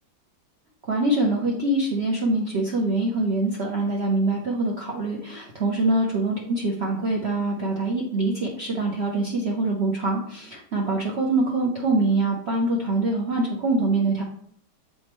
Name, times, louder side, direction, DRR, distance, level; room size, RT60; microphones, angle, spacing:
voice 1, 0.8-14.2, right 2 dB, 45° right, -2 dB, 1.0 m, -24 dB
7.0 x 5.2 x 3.1 m, 0.63 s
omnidirectional pair, 1.8 m